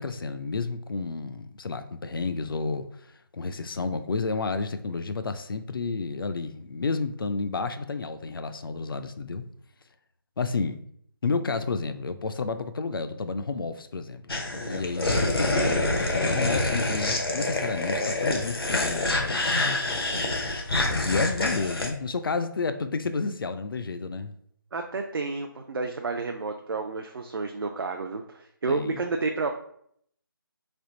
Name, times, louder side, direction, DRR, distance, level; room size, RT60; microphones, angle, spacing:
voice 1, 0.0-2.9 3.3-9.4 10.4-10.8 11.2-14.3 14.6-20.0 21.1-24.3 28.7-29.0, left 4 dB, 70° left, 0.4 m, -31 dB
sound 1, 14.3-21.9, left 2 dB, 85° left, 0.9 m, -26 dB
voice 2, 24.7-29.5, right 4 dB, 75° right, 0.4 m, -30 dB
3.4 x 2.5 x 3.9 m
figure-of-eight pair, 160°, 12 cm